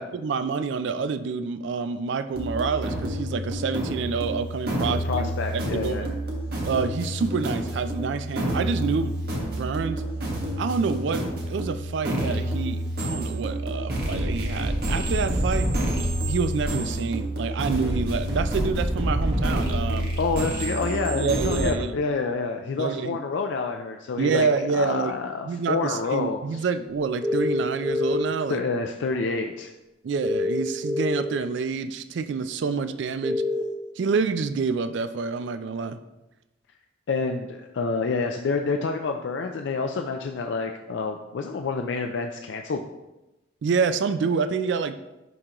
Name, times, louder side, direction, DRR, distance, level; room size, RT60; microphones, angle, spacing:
voice 1, 0.0-6.2 6.6-9.2 9.6-10.0 10.6-15.7 16.3-20.1 21.1-21.9 22.8-23.2 24.2-25.2 25.4-28.6 30.0-33.4 34.0-36.0 43.6-45.0, right 5 dB, 70° right, 11 dB, 0.3 m, -27 dB
sound 1, 2.3-21.7, right 1 dB, 50° right, 1.4 m, -28 dB
voice 2, 4.8-6.1 20.2-26.7 28.5-29.7 37.1-42.8, left 4 dB, 70° left, 4 dB, 0.4 m, -28 dB
sound 2, 27.2-28.2 30.2-31.2 33.2-33.6, left 2 dB, 20° right, 0.5 m, -25 dB
10.5 x 3.8 x 3.0 m, 0.99 s
head